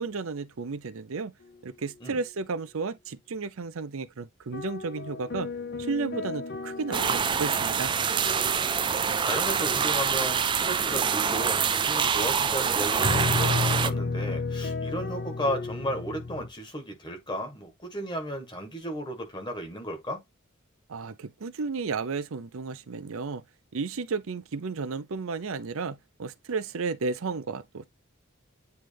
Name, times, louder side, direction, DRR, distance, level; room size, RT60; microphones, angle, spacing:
voice 1, 0.0-1.3 1.6-5.5 5.8-7.9 20.9-23.4 23.7-27.8, right 4 dB, 75° right, 0.6 m, -33 dB
sound 1, 4.5-9.0 9.6-10.0 13.0-16.5, left 3 dB, 50° left, 0.9 m, -32 dB
sound 2, 6.9-13.9, right 6 dB, 20° right, 0.3 m, -25 dB
voice 2, 8.7-20.2, equal, 20° left, 1.6 m, -34 dB
9.2 x 3.2 x 3.4 m
head